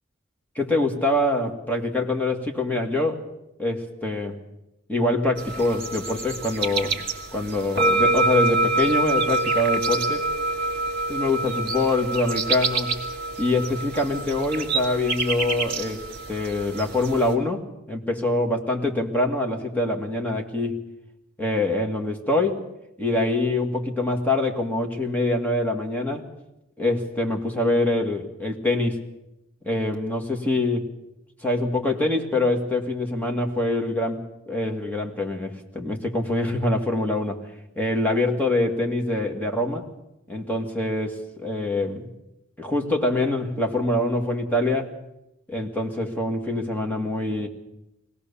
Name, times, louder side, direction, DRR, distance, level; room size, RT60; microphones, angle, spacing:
voice 1, 0.6-3.3 3.6-4.4 4.9-7.0 7.3-10.3 11.1-12.9 13.4-16.0 16.3-20.8 21.4-22.6 23.0-26.3 26.8-29.0 29.6-30.9 31.4-37.4 37.8-39.9 40.3-42.1 42.6-44.9 45.5-47.5, left 2 dB, 10° left, 1 dB, 2.1 m, -24 dB
sound 1, 5.4-17.3, right 2 dB, 50° right, 2.6 m, -26 dB
23.5 x 17.5 x 7.0 m, 0.90 s
head